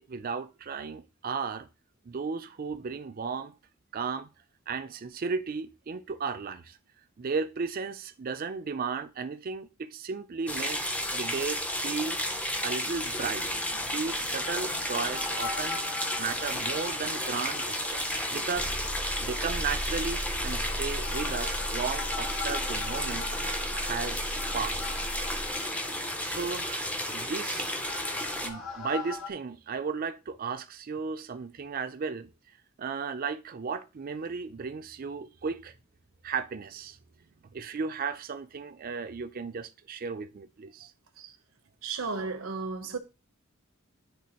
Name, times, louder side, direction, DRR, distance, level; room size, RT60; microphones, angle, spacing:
voice 1, 0.0-1.7 2.1-3.5 3.9-4.3 4.7-6.8 7.2-12.2 12.6-15.8 16.2-18.7 19.2-23.3 23.8-25.0 26.2-27.8 28.4-32.3 32.8-35.7 36.2-37.0 37.5-40.9, right 5 dB, 45° right, 0.5 m, -35 dB
sound 1, 10.5-28.5, left 1 dB, 5° left, 0.5 m, -32 dB
sound 2, 12.8-29.3, left 1 dB, 85° left, 1.4 m, -38 dB
voice 2, 41.8-43.0, right 4 dB, 90° right, 1.0 m, -34 dB
10.0 x 3.4 x 2.9 m
head